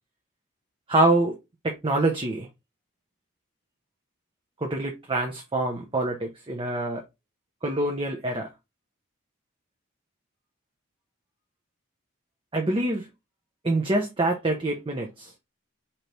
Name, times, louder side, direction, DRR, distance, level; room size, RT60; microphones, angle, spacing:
voice 1, 0.9-1.3 1.6-2.5 4.6-7.0 7.6-8.5 12.5-13.1 13.6-15.3, right 2 dB, 25° right, 0.6 m, -25 dB
3.9 x 2.9 x 3.2 m
head